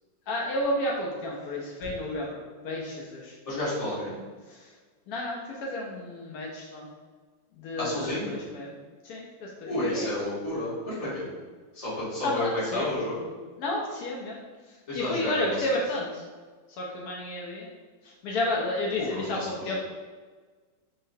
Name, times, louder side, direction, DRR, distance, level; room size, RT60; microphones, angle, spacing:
voice 1, 0.3-3.4 4.5-4.7 5.1-6.9 7.6-8.0 8.2-8.7 9.0-10.1 12.2-12.9 13.6-14.4 14.7-16.2 16.7-17.7 18.0-19.8, left 1 dB, 90° left, -2 dB, 0.8 m, -31 dB
voice 2, 3.4-4.2 7.8-8.4 9.7-11.3 11.7-13.3 14.9-15.6 19.0-19.8, left 1 dB, 25° left, -9 dB, 1.0 m, -31 dB
3.8 x 3.1 x 2.6 m, 1.4 s
omnidirectional pair, 2.3 m